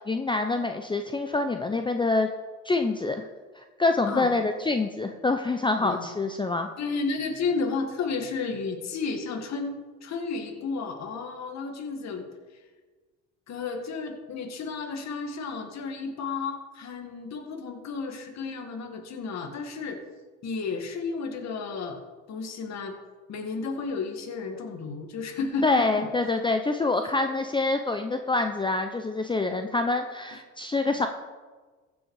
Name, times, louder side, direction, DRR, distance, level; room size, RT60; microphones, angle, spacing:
voice 1, 0.0-2.3 2.6-3.2 3.6-6.7 25.6-31.1, left 3 dB, 15° left, 6 dB, 0.7 m, -26 dB
voice 2, 6.8-12.2 13.5-20.0 20.4-22.0 22.3-23.0 23.3-26.1, left 4 dB, 55° left, 4 dB, 1.9 m, -32 dB
15.0 x 6.3 x 4.8 m, 1.4 s
supercardioid pair, 85°, 33 cm